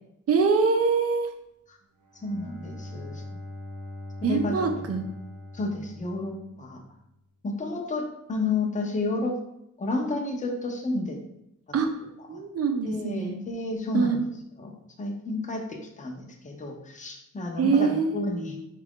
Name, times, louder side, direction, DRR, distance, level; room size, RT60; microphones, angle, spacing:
voice 1, 0.3-1.3 4.2-5.0 11.7-11.9 12.3-13.3 13.9-14.2 17.6-18.6, right 5 dB, 50° right, 6 dB, 0.6 m, -24 dB
Bowed string instrument, 2.0-6.9, left 1 dB, 80° right, 0.8 m, -41 dB
voice 2, 2.2-3.2 4.3-4.7 5.5-6.8 7.4-9.4 9.8-11.2 12.8-14.2 14.6-18.6, left 2 dB, 25° left, 2 dB, 0.7 m, -31 dB
4.6 x 2.4 x 3.6 m, 0.82 s
wide cardioid pair, 145°, 30 cm